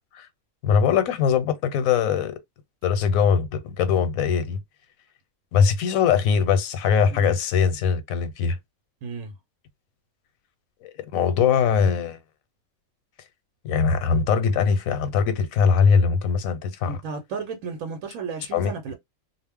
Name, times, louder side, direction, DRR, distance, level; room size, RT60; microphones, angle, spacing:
voice 1, 0.6-2.4 2.8-4.6 5.5-8.6 10.8-12.2 13.6-17.0 18.5-18.9, left 6 dB, 85° left, 1.1 m, -21 dB
voice 2, 9.0-9.3 16.9-18.9, right 5 dB, 80° right, 1.1 m, -33 dB
2.4 x 2.0 x 3.4 m
omnidirectional pair, 1.4 m